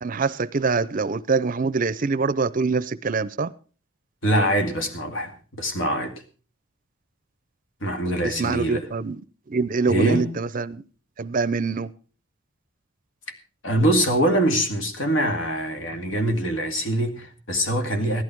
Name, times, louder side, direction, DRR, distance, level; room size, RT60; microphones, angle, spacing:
voice 1, 0.0-3.5 8.2-9.2 9.5-10.8 11.2-11.9, right 4 dB, 40° right, 0.6 m, -24 dB
voice 2, 4.2-6.2 7.8-8.9 9.9-10.3 13.6-18.2, right 1 dB, 70° left, 2.2 m, -23 dB
15.5 x 12.0 x 4.6 m
head